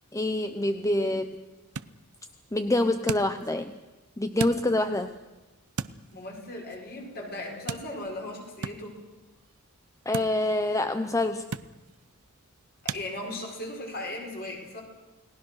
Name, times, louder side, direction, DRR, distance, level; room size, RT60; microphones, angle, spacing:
voice 1, 0.1-1.5 2.5-3.8 4.2-5.1 10.1-11.5, left 1 dB, 15° left, 9 dB, 0.7 m, -26 dB
sound 1, 0.6-13.1, right 5 dB, 90° right, 0.8 m, -41 dB
voice 2, 6.1-9.0 12.8-14.8, left 1 dB, 45° left, 0 dB, 5.8 m, -37 dB
29.5 x 19.5 x 6.5 m, 1.1 s
head